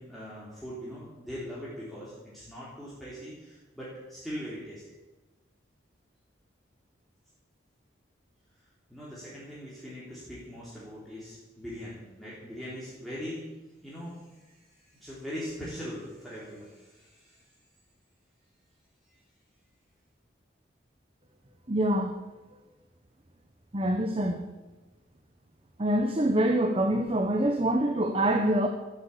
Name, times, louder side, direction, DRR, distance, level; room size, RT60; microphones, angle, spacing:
voice 1, 0.0-4.8 8.9-17.5 19.1-19.2, equal, ahead, -9 dB, 3.6 m, -41 dB
voice 2, 21.7-22.1 23.7-24.4 25.8-28.7, right 1 dB, 30° right, 6 dB, 1.0 m, -25 dB
14.0 x 8.8 x 8.5 m, 1.2 s
head